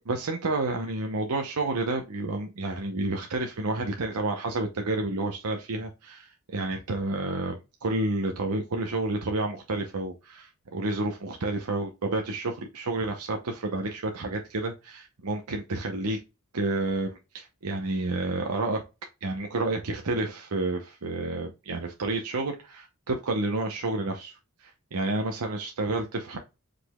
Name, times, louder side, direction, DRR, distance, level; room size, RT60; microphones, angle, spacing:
voice 1, 0.1-16.2 16.5-18.8 19.2-26.4, right 2 dB, 90° right, 0.8 m, -30 dB
5.0 x 3.8 x 2.2 m
head